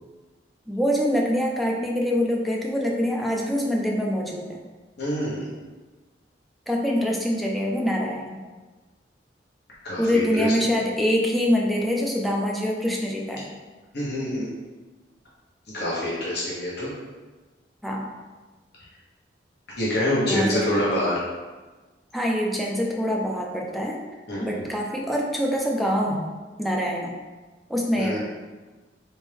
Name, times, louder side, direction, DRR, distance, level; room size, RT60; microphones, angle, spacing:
voice 1, 0.7-4.6 6.7-8.4 10.0-13.5 17.8-18.1 20.2-20.8 22.1-24.0 24.4-27.2 27.7-28.2, equal, ahead, -2 dB, 0.5 m, -25 dB
voice 2, 5.0-5.5 9.8-10.5 13.9-14.5 15.7-16.9 19.8-21.2 24.3-24.6 28.0-28.2, left 1 dB, 65° left, -7 dB, 1.2 m, -26 dB
4.2 x 3.6 x 3.4 m, 1.3 s
head